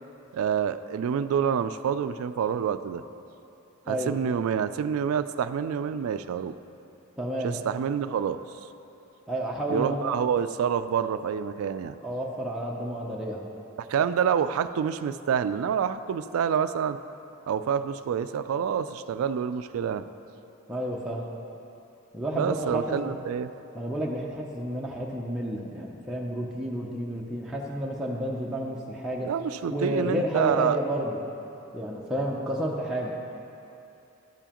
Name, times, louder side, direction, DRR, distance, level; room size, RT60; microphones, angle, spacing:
voice 1, 0.3-3.0 3.9-6.5 7.4-8.4 9.7-11.9 13.9-17.0 17.5-20.0 22.3-23.5 29.2-30.8, right 7 dB, 75° right, 13 dB, 0.3 m, -27 dB
voice 2, 7.2-7.6 9.3-10.1 12.0-13.4 20.7-21.3 22.1-23.1 23.7-29.3 29.7-31.2 31.7-33.1, equal, 5° right, -4 dB, 0.5 m, -31 dB
12.5 x 7.0 x 2.9 m, 2.8 s
head